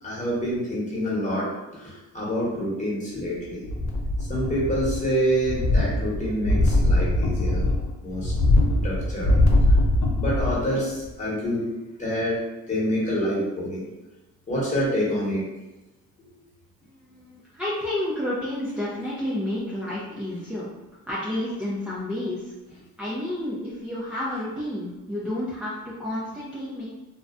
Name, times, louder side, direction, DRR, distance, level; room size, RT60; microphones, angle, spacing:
voice 1, 0.0-3.6 4.3-7.7 8.0-8.3 8.8-9.4 9.7-9.8 10.2-11.7 12.0-13.9 14.5-15.4, equal, 25° left, -7 dB, 1.1 m, -27 dB
sound 1, 3.6-5.1 5.4-10.7 11.0-11.1, left 1 dB, 65° left, 0.5 m, -22 dB
voice 2, 16.8-20.7 21.1-22.5 23.0-26.9, left 1 dB, 5° right, -9 dB, 0.5 m, -30 dB
2.4 x 2.1 x 2.4 m, 1.0 s
cardioid pair, 90°, 30 cm